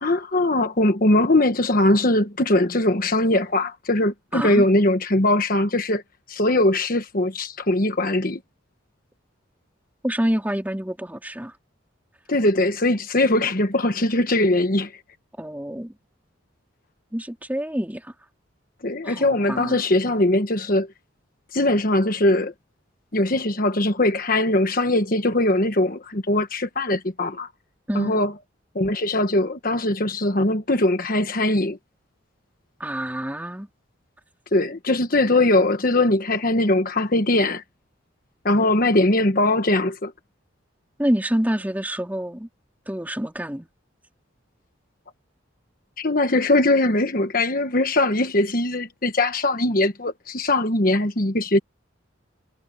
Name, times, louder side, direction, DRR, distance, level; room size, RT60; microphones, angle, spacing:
voice 1, 0.0-6.0 6.3-8.4 12.3-14.9 18.8-20.9 21.5-22.5 23.1-27.5 27.9-28.3 28.7-31.8 34.5-37.6 38.4-40.1 46.0-51.6, left 1 dB, 45° left, 1.3 m, -21 dB
voice 2, 4.3-4.6 10.0-11.6 15.4-15.9 17.1-18.1 19.0-19.8 27.9-28.2 32.8-33.7 41.0-42.5 42.9-43.7, equal, 10° right, 3.0 m, -27 dB
head